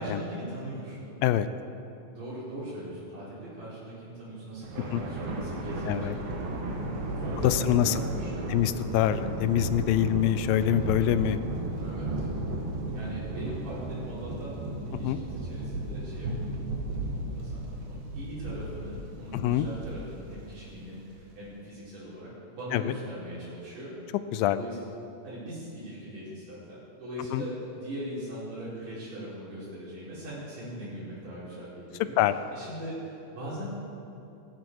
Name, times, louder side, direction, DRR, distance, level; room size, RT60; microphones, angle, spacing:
voice 1, 0.0-1.1 2.1-6.3 6.8-8.7 11.8-12.3 12.9-14.6 14.8-16.5 16.9-23.9 24.5-24.8 25.2-32.2 32.5-33.7, right 1 dB, 65° right, -11 dB, 6.0 m, -40 dB
Thunder, 4.6-21.2, right 2 dB, 90° right, 3.6 m, -34 dB
voice 2, 7.4-8.0 8.5-11.4 14.9-15.2 19.3-19.7 22.7-22.9 24.3-24.6 27.3-27.4 32.2-32.3, left 12 dB, 85° left, 13 dB, 2.3 m, -25 dB
18.0 x 15.0 x 4.7 m, 2.9 s
omnidirectional pair, 4.0 m